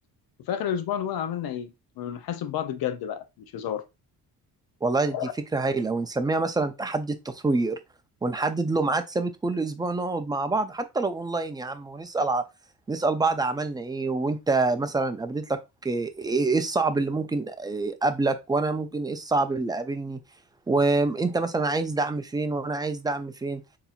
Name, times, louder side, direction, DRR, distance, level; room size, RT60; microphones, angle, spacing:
voice 1, 0.4-3.2 3.5-3.8 5.1-5.3, left 9 dB, 80° left, 0.7 m, -30 dB
voice 2, 4.8-5.1 5.5-7.8 8.2-12.4 12.9-20.2 20.7-23.6, right 3 dB, 10° right, 0.4 m, -26 dB
4.0 x 2.9 x 2.3 m
cardioid pair, 120°, 36 cm